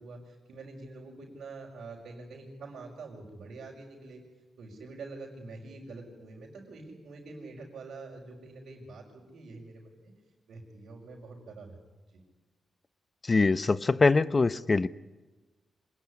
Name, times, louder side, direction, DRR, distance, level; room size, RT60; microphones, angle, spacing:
voice 1, 0.0-4.2 4.6-10.1 10.5-11.8 12.1-12.2, right 3 dB, 80° right, -4 dB, 5.4 m, -46 dB
voice 2, 13.3-14.9, left 3 dB, 35° left, 17 dB, 0.9 m, -23 dB
26.0 x 20.0 x 10.0 m, 1.2 s
cardioid pair, 70°, 0 cm